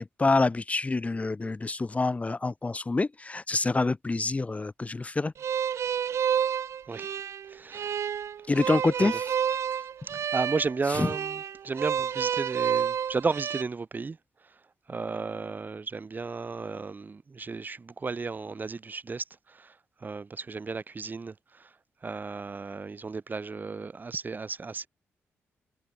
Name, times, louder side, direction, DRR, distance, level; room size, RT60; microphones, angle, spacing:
voice 1, 0.0-5.3 8.5-9.3 10.9-11.1, left 3 dB, 25° left, 3.2 m, -27 dB
sound 1, 5.4-13.6, right 8 dB, 70° right, 1.1 m, -30 dB
voice 2, 7.5-8.0 9.0-9.1 10.3-14.2 14.9-19.8 20.0-21.7 22.0-24.9, right 4 dB, 35° right, 4.3 m, -34 dB
cardioid pair, 75°, 5 cm